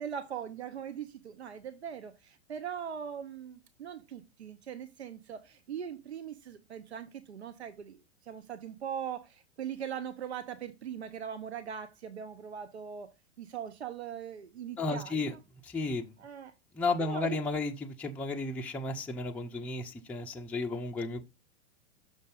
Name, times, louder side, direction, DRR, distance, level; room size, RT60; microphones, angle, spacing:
voice 1, 0.0-15.4 16.2-16.5 17.0-17.4, right 8 dB, 75° right, 0.8 m, -41 dB
voice 2, 14.8-15.3 15.6-16.1 16.7-21.2, left 3 dB, 5° left, 0.5 m, -33 dB
6.2 x 5.2 x 3.7 m
figure-of-eight pair, 95°, 33 cm